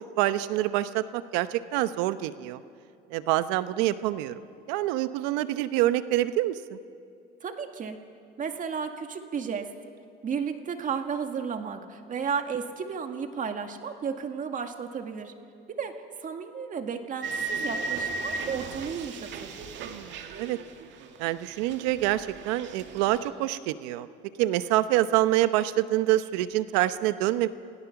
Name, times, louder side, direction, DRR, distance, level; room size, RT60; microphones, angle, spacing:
voice 1, 0.2-2.6 3.1-4.4 4.7-6.8 19.8-20.6 21.2-24.1 24.4-27.5, right 15 dB, 90° right, 13 dB, 0.9 m, -26 dB
voice 2, 7.4-8.0 8.4-9.7 10.2-15.3 15.7-19.6, right 6 dB, 40° right, 6 dB, 1.9 m, -33 dB
sound 1, 17.2-21.2 21.4-23.3, right 3 dB, 60° right, 2.1 m, -35 dB
29.5 x 17.0 x 6.0 m, 2.5 s
supercardioid pair, 105°, 21 cm